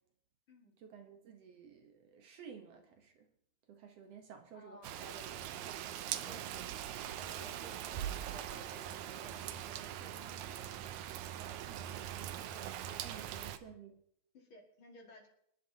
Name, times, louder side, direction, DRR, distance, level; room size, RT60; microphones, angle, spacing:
voice 1, 0.8-3.3 3.7-6.1 11.3-14.0, right 6 dB, 65° right, 5 dB, 2.0 m, -54 dB
voice 2, 4.5-5.2 6.3-10.8 11.5-11.6 12.1-12.2 12.8-13.4 14.3-15.3, left 1 dB, 50° left, 0 dB, 2.5 m, -57 dB
Rain, 4.8-13.6, right 11 dB, 80° right, 2.1 m, -42 dB
26.0 x 11.0 x 2.8 m, 0.74 s
omnidirectional pair, 3.4 m